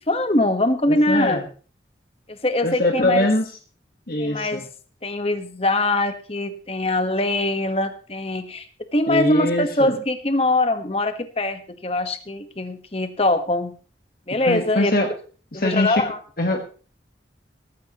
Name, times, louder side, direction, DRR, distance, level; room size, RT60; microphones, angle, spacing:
voice 1, 0.1-1.4 2.3-3.3 4.2-4.6 5.0-8.7 8.9-13.7 14.3-14.9 15.5-16.2, left 2 dB, 30° left, 8 dB, 1.3 m, -22 dB
voice 2, 0.9-1.4 2.6-3.5 4.1-4.6 9.1-10.0 14.4-15.1 15.5-16.0 16.4-16.7, left 1 dB, 50° left, 3 dB, 1.5 m, -22 dB
16.5 x 15.0 x 3.0 m, 0.39 s
head